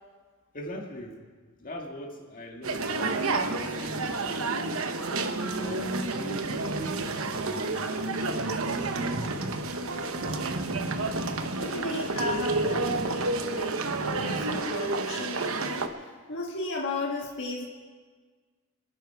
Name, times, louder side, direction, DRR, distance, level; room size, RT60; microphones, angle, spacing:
voice 1, 0.5-1.2 1.6-4.8 5.5-10.0, equal, 40° left, 1 dB, 2.0 m, -43 dB
sound 1, 2.6-15.9, right 3 dB, 70° right, 1.0 m, -30 dB
voice 2, 11.6-17.6, left 2 dB, 60° left, -2 dB, 1.6 m, -35 dB
27.0 x 10.0 x 4.7 m, 1.5 s
head